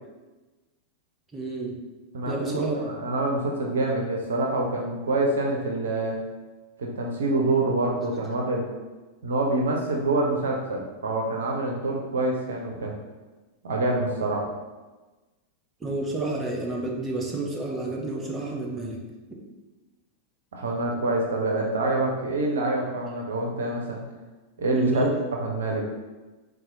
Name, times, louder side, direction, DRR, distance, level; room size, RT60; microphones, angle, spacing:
voice 1, 1.3-1.7 2.3-2.8 15.8-19.0 24.7-25.2, right 2 dB, 15° right, -2 dB, 0.6 m, -29 dB
voice 2, 2.1-6.2 6.8-8.6 9.2-13.0 13.6-14.5 20.5-24.0 24.6-25.0 25.3-25.8, right 2 dB, 65° right, 0 dB, 0.4 m, -26 dB
4.0 x 2.3 x 2.5 m, 1.2 s
figure-of-eight pair, 90°, 0 cm